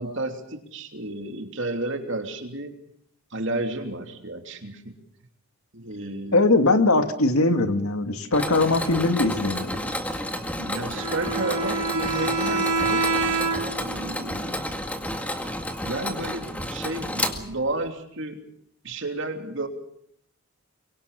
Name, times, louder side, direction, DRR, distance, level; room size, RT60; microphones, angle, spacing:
voice 1, 0.0-2.7 3.3-4.9 5.7-6.5 10.6-13.3 13.8-14.6 15.8-18.4 18.8-19.7, right 2 dB, 55° right, 5 dB, 3.2 m, -32 dB
voice 2, 6.3-9.8, left 2 dB, 75° left, 7 dB, 2.3 m, -21 dB
Mechanisms, 8.3-17.9, left 1 dB, 5° left, 1.9 m, -31 dB
Bowed string instrument, 10.9-13.9, right 3 dB, 85° right, 3.6 m, -26 dB
24.0 x 23.0 x 6.8 m, 0.70 s
head